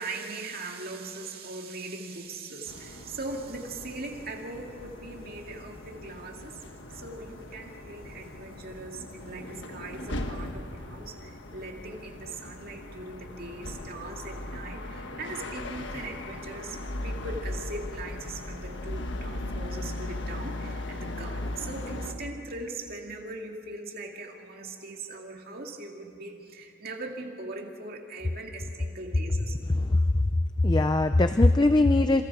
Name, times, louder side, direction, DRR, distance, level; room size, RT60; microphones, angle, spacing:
voice 1, 0.0-6.6 6.9-29.6, right 2 dB, 45° right, 1 dB, 2.3 m, -40 dB
sound 1, 2.6-22.1, left 1 dB, 55° left, 1.4 m, -38 dB
voice 2, 29.7-30.2 30.6-32.2, left 2 dB, 20° left, 9 dB, 0.4 m, -21 dB
28.5 x 27.0 x 4.8 m, 2.6 s
head